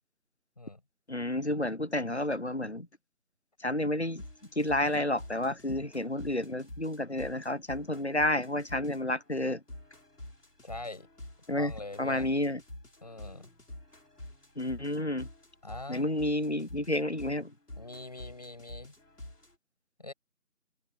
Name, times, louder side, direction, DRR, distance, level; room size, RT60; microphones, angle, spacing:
voice 1, 1.1-2.9 3.6-4.2 4.6-9.6 11.5-11.7 12.0-12.6 14.6-15.3 15.9-17.5, left 1 dB, 45° left, 0.8 m, -30 dB
sound 1, 4.2-9.2 9.7-19.5, left 1 dB, 75° left, 5.5 m, -48 dB
voice 2, 10.6-11.1 11.6-12.3 13.0-13.5 15.6-16.1 17.8-18.9 20.0-20.1, left 2 dB, 25° left, 7.6 m, -43 dB
figure-of-eight pair, 175°, 46 cm